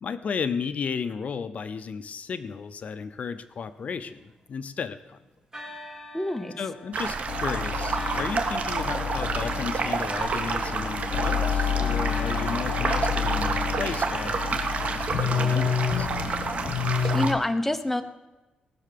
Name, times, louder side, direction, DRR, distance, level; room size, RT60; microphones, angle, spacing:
voice 1, 0.0-5.2 6.6-16.1, left 6 dB, 55° left, 12 dB, 0.6 m, -34 dB
sound 1, 3.5-5.0 5.5-16.1, left 1 dB, 20° right, 2.6 m, -45 dB
voice 2, 6.1-6.5 17.0-18.0, left 1 dB, 10° left, 9 dB, 0.8 m, -26 dB
sound 2, 6.9-17.3, right 4 dB, 55° right, 1.5 m, -29 dB
sound 3, 7.3-17.3, left 7 dB, 85° left, 1.2 m, -29 dB
18.5 x 6.6 x 6.8 m, 1.1 s
cardioid pair, 110°, 3 cm